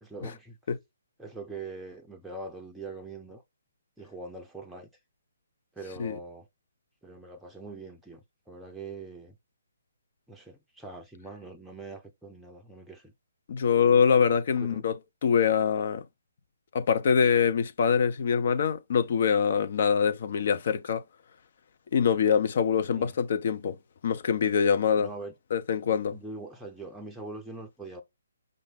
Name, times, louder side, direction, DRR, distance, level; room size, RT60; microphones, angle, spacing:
voice 1, 0.0-0.6 1.2-3.4 4.0-4.9 5.7-6.5 7.0-9.4 10.3-13.1 14.5-14.9 22.9-23.1 25.0-25.3 26.1-28.0, right 3 dB, 5° right, 0.6 m, -42 dB
voice 2, 13.5-15.0 15.2-16.0 16.7-21.0 21.9-23.8 24.0-25.1 25.5-26.1, left 7 dB, 45° left, 0.7 m, -24 dB
5.2 x 2.6 x 3.5 m
figure-of-eight pair, 135°, 0 cm